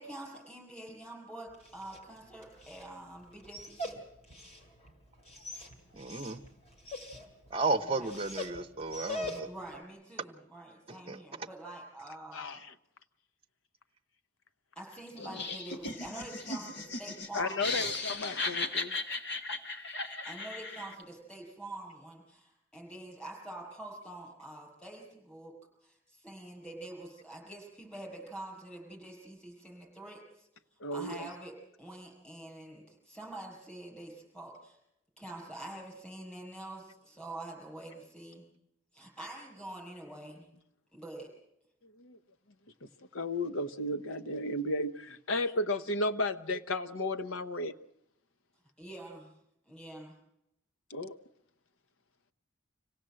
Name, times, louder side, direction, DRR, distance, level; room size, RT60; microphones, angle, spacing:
voice 1, 0.0-4.0 7.6-8.1 9.4-12.6 14.8-17.9 20.3-25.5 25.8-30.5 30.9-34.8 35.2-38.5 38.9-40.5 40.9-41.3 48.8-49.3 49.7-50.2, right 2 dB, 5° left, 6.7 m, -46 dB
Dog, 1.5-9.8, left 1 dB, 30° left, 2.7 m, -44 dB
voice 2, 5.9-6.4 7.5-9.5 11.1-11.2, right 3 dB, 30° right, 0.8 m, -33 dB
voice 3, 12.3-12.7 17.3-19.0 30.8-31.3 42.0-42.2 42.8-47.7 50.9-51.2, left 1 dB, 85° left, 1.0 m, -34 dB
Laughter, 15.2-21.0, left 3 dB, 55° left, 1.7 m, -37 dB
26.0 x 17.0 x 7.7 m
head